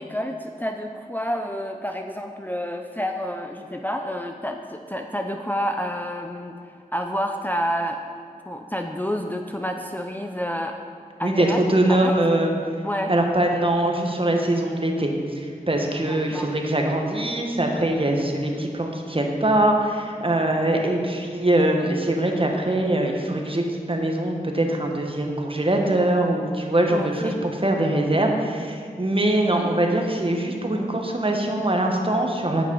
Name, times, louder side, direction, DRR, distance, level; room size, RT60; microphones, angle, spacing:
voice 1, 0.0-6.6 6.9-8.0 8.5-10.8 11.2-11.6 11.9-12.1 12.8-13.1 16.1-16.5 26.9-27.4, equal, 10° left, 4 dB, 0.6 m, -29 dB
voice 2, 11.2-12.5 13.1-32.7, right 1 dB, 35° right, 2 dB, 1.3 m, -22 dB
9.6 x 6.0 x 5.4 m, 2.1 s
cardioid pair, 45°, 15 cm